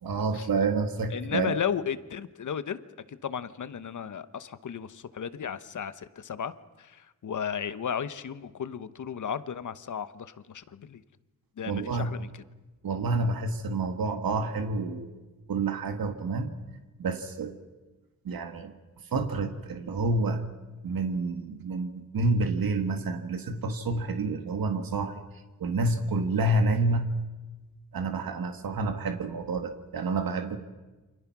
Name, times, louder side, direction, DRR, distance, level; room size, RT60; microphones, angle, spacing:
voice 1, 0.0-1.6 11.7-12.1 12.8-15.1 15.5-16.5 17.0-17.5 18.3-18.7 19.1-20.4 20.8-25.2 25.6-27.1 27.9-30.6, right 3 dB, 85° right, 6 dB, 2.0 m, -28 dB
voice 2, 1.1-2.8 3.1-6.5 6.8-11.0 11.6-12.4, left 8 dB, 60° left, 13 dB, 1.1 m, -34 dB
29.0 x 26.0 x 6.1 m, 1.2 s
wide cardioid pair, 170°, 34 cm